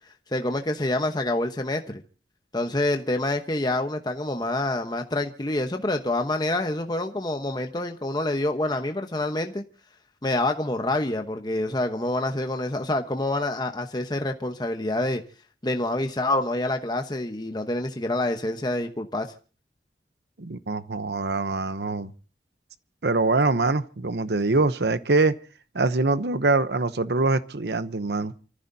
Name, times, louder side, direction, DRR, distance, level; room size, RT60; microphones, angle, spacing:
voice 1, 0.3-1.8 2.5-9.6 10.2-15.2 15.6-19.3, left 2 dB, 25° left, 1.0 m, -27 dB
voice 2, 20.4-22.1 23.0-25.4 25.7-28.3, right 3 dB, 70° right, 0.9 m, -24 dB
29.0 x 14.5 x 2.7 m
head